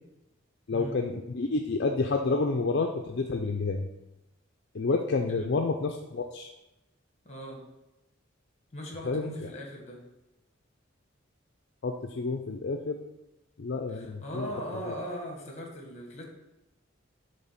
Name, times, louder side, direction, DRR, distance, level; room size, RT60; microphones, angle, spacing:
voice 1, 0.7-3.9 4.7-6.5 9.1-9.3 11.8-13.0 13.6-14.5, left 3 dB, 55° left, 3 dB, 0.5 m, -29 dB
voice 2, 7.2-7.6 8.7-10.0 13.9-16.2, equal, 35° left, 1 dB, 1.6 m, -39 dB
7.7 x 3.4 x 5.8 m, 0.95 s
head